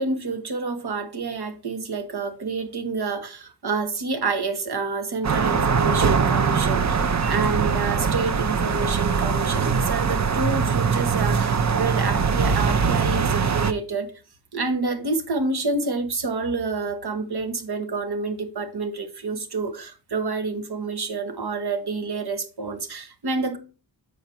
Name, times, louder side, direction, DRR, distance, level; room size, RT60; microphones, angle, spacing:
voice 1, 0.0-14.1 14.5-23.6, right 3 dB, 70° right, 1.4 m, -28 dB
sound 1, 5.2-13.7, right 5 dB, 45° right, 0.7 m, -22 dB
7.0 x 4.7 x 4.6 m
cardioid pair, 45°, 41 cm